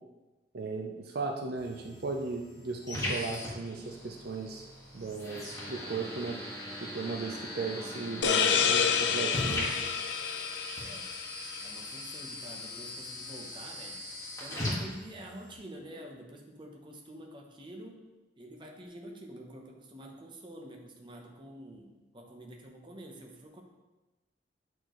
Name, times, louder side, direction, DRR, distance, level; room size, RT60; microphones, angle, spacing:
voice 1, 0.5-4.7 4.9-6.4 6.8-9.7, right 4 dB, 60° right, 2 dB, 0.5 m, -36 dB
sound 1, 1.6-15.6, left 1 dB, 20° left, 1.7 m, -39 dB
sound 2, 8.2-11.7, left 7 dB, 75° left, 0.4 m, -29 dB
voice 2, 10.8-11.1 11.6-14.0 14.4-18.0 18.4-23.6, right 1 dB, 25° right, 1 dB, 0.8 m, -47 dB
8.4 x 4.5 x 3.0 m, 1.1 s
head